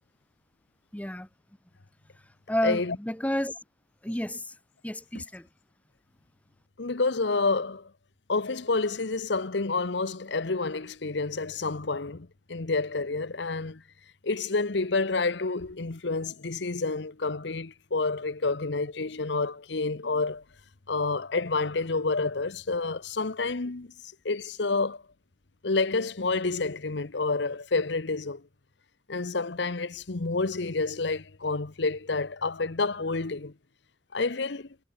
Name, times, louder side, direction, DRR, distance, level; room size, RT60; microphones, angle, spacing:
voice 1, 0.9-1.3 2.5-3.5 4.0-4.5 4.8-5.5, left 1 dB, 10° left, 0.8 m, -30 dB
voice 2, 2.6-3.0 5.1-5.2 6.8-7.9 8.3-13.8 14.2-20.4 20.9-23.9 24.2-25.0 25.6-28.4 29.1-33.5 34.1-34.7, left 3 dB, 65° left, 1.0 m, -29 dB
head